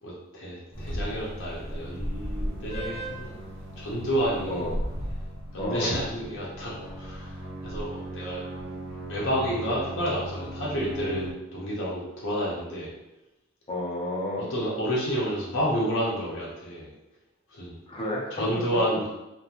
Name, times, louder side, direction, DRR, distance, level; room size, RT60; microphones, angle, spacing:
voice 1, 0.0-3.4 3.8-4.7 5.5-8.4 9.1-12.9 14.4-16.9 17.5-17.8 18.3-19.1, equal, 65° left, -6 dB, 0.7 m, -30 dB
sound 1, 0.7-11.3, equal, 30° right, 0.9 m, -36 dB
voice 2, 5.6-5.9 13.7-14.5 17.9-18.4, left 1 dB, 25° left, -3 dB, 0.5 m, -31 dB
2.9 x 2.1 x 2.4 m, 0.97 s
head